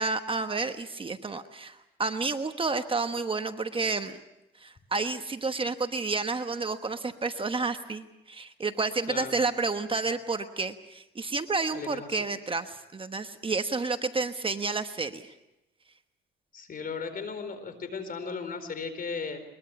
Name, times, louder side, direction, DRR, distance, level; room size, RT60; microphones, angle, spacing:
voice 1, 0.0-4.2 4.6-15.3, right 3 dB, 25° right, 8 dB, 1.2 m, -30 dB
voice 2, 11.7-12.3 16.5-19.4, left 5 dB, 45° left, 10 dB, 4.2 m, -36 dB
22.0 x 22.0 x 7.0 m, 0.92 s
cardioid pair, 90°, 20 cm